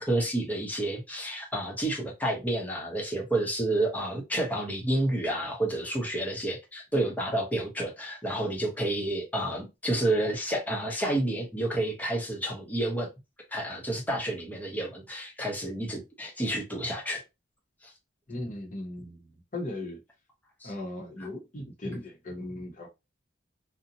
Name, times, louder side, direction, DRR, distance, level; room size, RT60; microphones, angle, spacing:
voice 1, 0.0-13.1 13.5-17.2 20.6-20.7 21.2-21.3, right 1 dB, 10° left, 0.7 m, -30 dB
voice 2, 18.3-20.0 20.6-22.9, left 1 dB, 40° left, 0.8 m, -37 dB
2.6 x 2.1 x 2.7 m
head